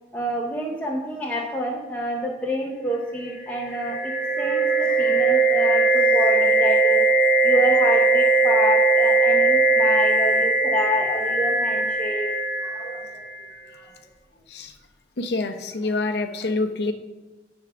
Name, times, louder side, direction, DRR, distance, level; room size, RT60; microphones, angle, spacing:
voice 1, 0.1-4.1 4.4-7.1 7.4-12.2 12.6-13.2 13.8-13.9, equal, 10° left, -2 dB, 0.7 m, -28 dB
sound 1, 3.5-13.3, right 2 dB, 45° left, 1.6 m, -20 dB
voice 2, 15.2-16.9, left 3 dB, 65° left, 8 dB, 0.6 m, -26 dB
10.5 x 3.6 x 5.8 m, 1.2 s
head